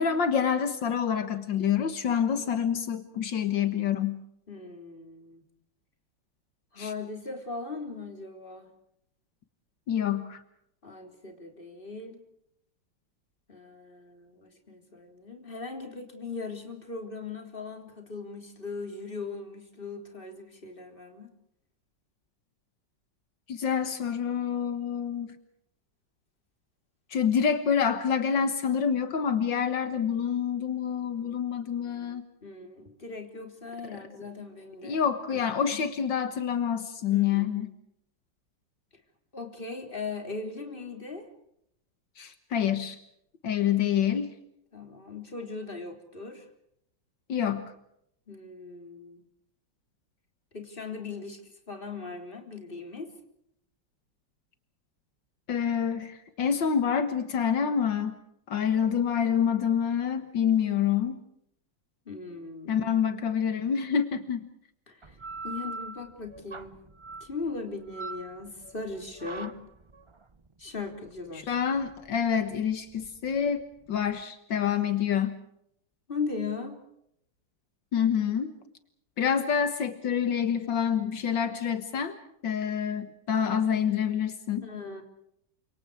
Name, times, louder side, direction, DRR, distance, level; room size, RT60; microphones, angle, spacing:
voice 1, 0.0-4.2 6.8-6.9 9.9-10.4 23.5-25.4 27.1-32.2 34.8-37.7 42.2-43.0 43.4-44.3 47.3-47.7 55.5-58.1 58.5-61.2 62.7-64.5 71.5-75.4 77.9-78.5 79.2-82.2 82.4-84.7, left 8 dB, 80° left, 10 dB, 2.1 m, -27 dB
voice 2, 4.5-5.4 6.7-8.7 10.8-12.2 13.5-21.3 32.4-35.0 35.3-35.8 37.1-37.5 39.3-41.3 44.7-46.5 48.3-49.2 50.5-53.1 62.1-62.9 64.9-65.2 65.4-66.8 67.2-69.6 70.6-71.6 76.1-76.8 84.6-85.0, left 4 dB, 30° left, 4 dB, 3.8 m, -39 dB
sound 1, 65.0-74.2, right 3 dB, 25° right, 0.6 m, -43 dB
29.0 x 26.5 x 4.9 m, 0.75 s
omnidirectional pair, 2.0 m